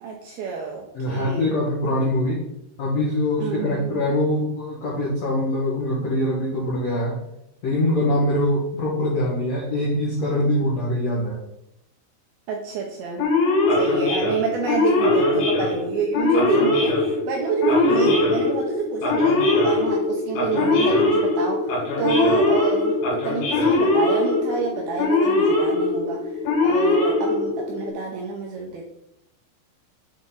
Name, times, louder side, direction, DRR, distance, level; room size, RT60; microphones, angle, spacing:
voice 1, 0.0-1.5 3.4-4.2 12.5-13.2 13.7-28.9, right 6 dB, 80° right, -1 dB, 2.2 m, -28 dB
voice 2, 0.9-2.4 2.8-7.2 7.6-11.4, left 1 dB, 75° left, -5 dB, 1.5 m, -23 dB
Male speech man speaking / Siren, 13.2-27.9, left 3 dB, 90° left, 4.1 m, -21 dB
7.8 x 4.2 x 3.8 m, 0.81 s
omnidirectional pair, 5.2 m